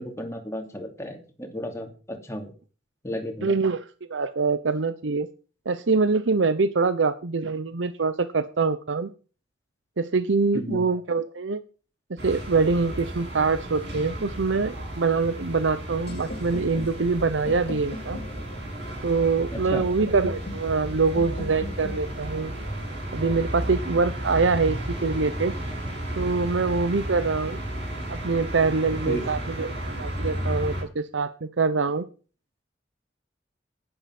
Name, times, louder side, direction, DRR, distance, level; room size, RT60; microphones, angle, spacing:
voice 1, 0.0-2.5 3.0-3.6 10.5-10.8 19.5-19.8 29.1-29.3, equal, 15° left, 3 dB, 2.7 m, -33 dB
voice 2, 3.4-3.8 4.1-5.3 5.7-9.1 10.0-11.6 12.2-18.2 19.0-22.5 23.1-25.5 26.2-27.6 28.1-29.7 30.0-32.1, right 4 dB, 80° right, 13 dB, 0.7 m, -24 dB
sound 1, 12.2-30.8, right 1 dB, 60° right, 7.0 m, -33 dB
sound 2, 16.1-24.0, left 2 dB, 55° left, 2.9 m, -41 dB
11.0 x 10.5 x 5.9 m, 0.38 s
head